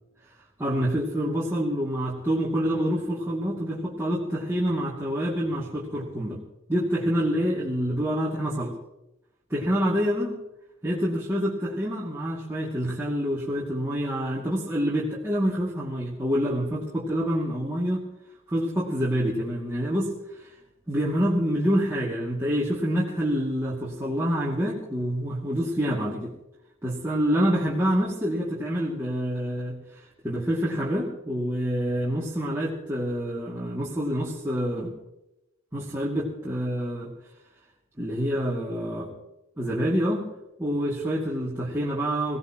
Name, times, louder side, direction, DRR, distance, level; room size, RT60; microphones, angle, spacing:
voice 1, 0.6-6.4 6.7-8.7 9.5-10.4 10.8-18.0 18.5-20.5 20.9-26.3 26.8-34.9 35.7-37.1 38.0-39.1 39.6-40.2 40.6-42.4, equal, 15° right, -7 dB, 2.5 m, -27 dB
24.5 x 17.5 x 3.1 m, 0.90 s
head